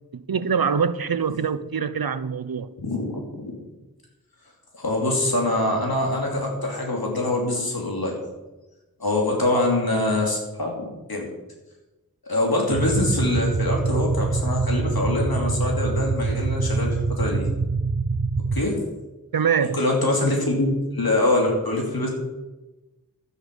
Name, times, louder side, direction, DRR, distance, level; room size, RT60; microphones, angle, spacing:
voice 1, 0.1-2.8 19.3-19.8, right 6 dB, 75° right, 0.7 m, -24 dB
voice 2, 2.8-3.5 4.8-8.2 9.0-11.3 12.3-17.5 18.5-18.8 19.6-22.1, left 2 dB, 85° left, 2.9 m, -24 dB
sound 1, 12.7-18.7, right 4 dB, 50° right, 0.8 m, -24 dB
12.0 x 9.8 x 5.4 m
wide cardioid pair, 40°, 35 cm